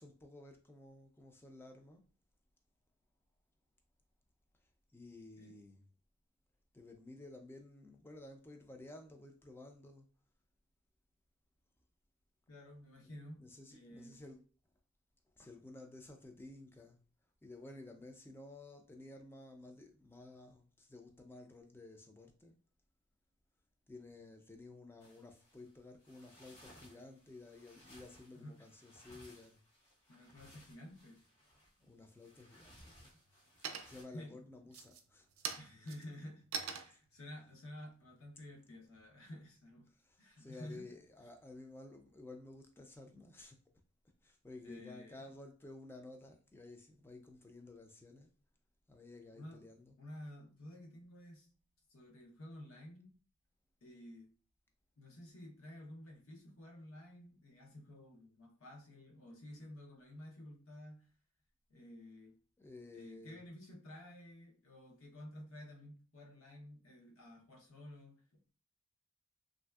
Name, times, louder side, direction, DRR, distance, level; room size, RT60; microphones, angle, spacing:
voice 1, 0.0-2.0 4.9-5.8 6.7-10.1 13.4-14.4 15.4-17.0 17.4-22.6 23.9-29.6 31.8-33.2 33.8-35.6 36.9-37.0 40.0-43.6 44.2-48.3 48.9-49.9 62.6-63.4, left 2 dB, 10° left, 0.3 m, -54 dB
voice 2, 12.5-13.4 13.7-14.2 28.3-28.6 30.1-31.2 33.7-34.4 35.6-39.9 40.2-40.9 44.6-45.2 49.3-49.6 50.0-51.5 51.9-53.1 53.8-54.3 55.0-61.1 61.7-62.4 62.9-68.2, left 1 dB, 75° left, 0.8 m, -52 dB
sound 1, 25.0-34.0, equal, 55° left, 1.1 m, -62 dB
sound 2, 32.0-32.6 33.0-33.4 33.6-34.2 34.6-39.1, right 7 dB, 80° right, 0.4 m, -45 dB
3.2 x 2.5 x 2.3 m
head